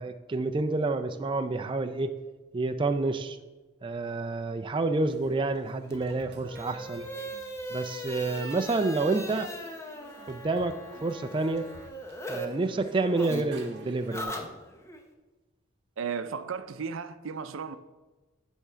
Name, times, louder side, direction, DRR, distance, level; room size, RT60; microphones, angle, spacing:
voice 1, 0.0-2.1 2.5-3.4 3.8-7.0 7.7-9.5 10.3-11.7 12.3-14.4, right 3 dB, 25° right, 0.4 m, -29 dB
sound 1, 5.0-14.2, right 2 dB, 60° right, 1.0 m, -53 dB
sound 2, 5.8-12.5 12.7-15.0, equal, 15° left, 0.8 m, -40 dB
voice 2, 16.0-17.8, right 6 dB, 90° right, 0.5 m, -34 dB
10.0 x 3.7 x 5.6 m
head